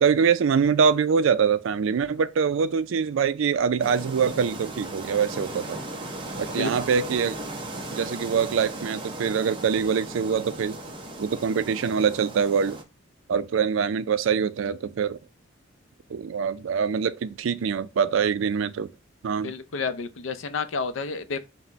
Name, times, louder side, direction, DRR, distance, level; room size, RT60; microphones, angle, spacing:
voice 1, 0.0-5.8 6.4-7.3 7.9-10.8 11.2-12.8 13.3-15.2 16.1-18.9 19.2-19.5, right 6 dB, 90° right, 0.4 m, -24 dB
sound 1, 3.8-12.8, right 1 dB, 25° right, 0.6 m, -37 dB
voice 2, 19.4-21.4, left 4 dB, 90° left, 0.5 m, -30 dB
4.0 x 2.1 x 4.5 m
head